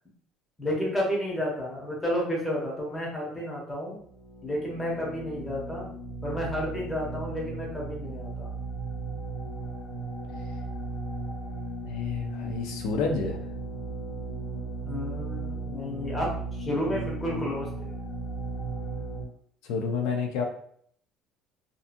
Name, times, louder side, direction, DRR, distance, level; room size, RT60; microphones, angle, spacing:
voice 1, 0.6-4.0 4.4-5.9 6.2-8.5 14.8-17.9, equal, 10° left, -3 dB, 0.7 m, -31 dB
sound 1, 4.0-19.2, right 3 dB, 45° left, 1.2 m, -36 dB
voice 2, 11.8-13.4 19.6-20.4, left 4 dB, 80° left, 2 dB, 0.4 m, -29 dB
2.6 x 2.4 x 2.5 m, 0.62 s
cardioid pair, 175°, 0 cm